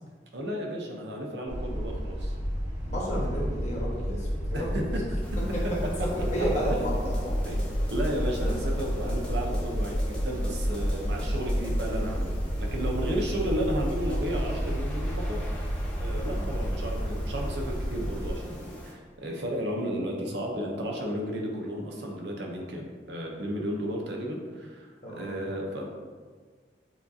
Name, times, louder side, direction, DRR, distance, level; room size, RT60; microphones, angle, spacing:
voice 1, 0.3-2.3 4.5-5.0 7.4-7.6 7.9-15.4 16.0-24.9 25.1-25.9, equal, 75° right, 0 dB, 0.7 m, -33 dB
sound 1, 1.5-18.3, equal, 40° right, 1.4 m, -30 dB
voice 2, 2.8-4.9 5.5-5.6 6.2-7.6 8.4-8.6 13.3-13.5 16.2-16.5 25.0-25.4, equal, 40° left, -5 dB, 1.1 m, -32 dB
sound 2, 5.2-18.9, equal, 5° left, 0.6 m, -44 dB
7.1 x 2.4 x 2.7 m, 1.5 s
head